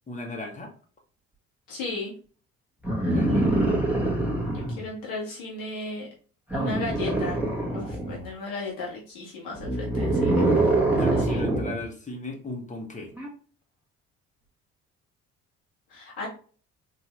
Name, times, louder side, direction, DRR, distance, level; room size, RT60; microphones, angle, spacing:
voice 1, 0.1-0.7 3.1-3.5 10.9-13.1, left 2 dB, 20° left, 2 dB, 1.3 m, -37 dB
voice 2, 1.7-2.1 4.5-6.1 6.5-7.4 7.7-10.7 11.1-11.4 15.9-16.3, left 3 dB, 65° left, -4 dB, 1.5 m, -35 dB
sound 1, 2.8-4.8 6.5-8.2 9.5-11.8 13.2-13.3, right 2 dB, 5° right, 1.3 m, -24 dB
4.5 x 2.7 x 3.0 m, 0.41 s
figure-of-eight pair, 50°, 39 cm